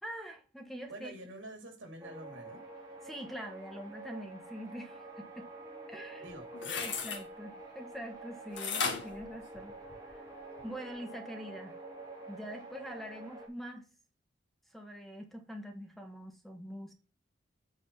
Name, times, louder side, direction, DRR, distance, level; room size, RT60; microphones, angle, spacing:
voice 1, 0.0-1.1 3.0-5.5 5.9-6.3 6.8-9.7 10.1-10.2 10.6-11.7 12.3-13.8 14.7-16.9, equal, ahead, 1.2 m, -44 dB
voice 2, 0.9-2.6 6.2-6.9, right 1 dB, 90° right, 3.0 m, -47 dB
sound 1, 2.0-13.5, right 2 dB, 20° right, 2.5 m, -48 dB
sound 2, 6.3-7.2 8.6-10.1 10.6-10.7, left 5 dB, 70° left, 1.7 m, -35 dB
8.7 x 4.3 x 5.5 m
head